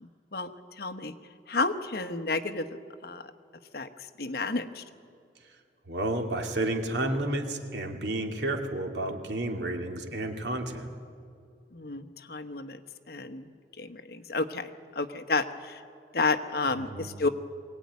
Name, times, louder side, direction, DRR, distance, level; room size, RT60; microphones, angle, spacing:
voice 1, 0.0-0.5 0.8-1.1 1.5-2.6 3.0-3.2 3.7-3.9 4.2-4.8 11.7-12.8 13.1-14.7 14.9-15.8 16.1-17.3, left 3 dB, 60° left, 9 dB, 1.1 m, -31 dB
voice 2, 5.9-10.9 16.7-17.1, right 1 dB, 80° right, 3 dB, 2.6 m, -31 dB
22.5 x 17.5 x 9.5 m, 2.4 s
head